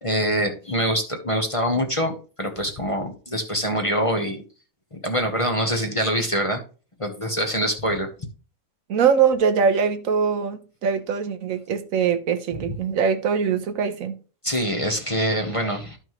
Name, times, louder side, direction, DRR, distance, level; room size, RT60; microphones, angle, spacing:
voice 1, 0.0-4.4 4.9-6.6 7.0-8.1 12.7-12.8 14.4-16.0, equal, 25° left, 1.0 m, -24 dB
voice 2, 8.9-14.2, right 6 dB, 75° right, 1.2 m, -22 dB
12.0 x 5.7 x 3.1 m
omnidirectional pair, 1.5 m